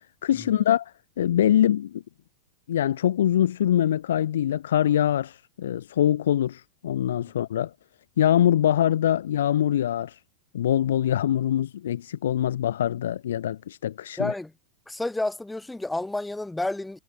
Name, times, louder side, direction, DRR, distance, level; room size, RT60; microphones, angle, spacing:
voice 1, 0.2-0.9 1.2-2.0 2.7-7.7 8.2-10.2 10.5-14.3, left 11 dB, 60° left, 0.4 m, -23 dB
voice 2, 14.2-14.5 14.9-17.0, left 2 dB, 5° left, 1.6 m, -30 dB
figure-of-eight pair, 90°, 0 cm